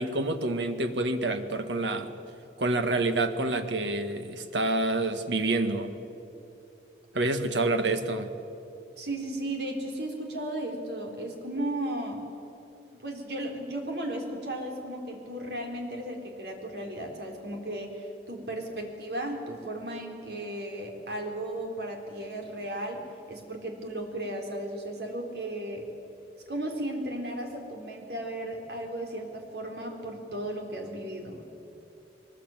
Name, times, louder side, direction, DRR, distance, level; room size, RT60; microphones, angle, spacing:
voice 1, 0.0-2.1 2.6-5.9 7.1-8.3, right 2 dB, 90° right, 8 dB, 1.8 m, -27 dB
voice 2, 9.0-12.2 13.0-23.0 23.3-25.9 26.5-31.5, right 1 dB, 65° right, 2 dB, 4.0 m, -35 dB
23.0 x 20.0 x 9.0 m, 2.9 s
head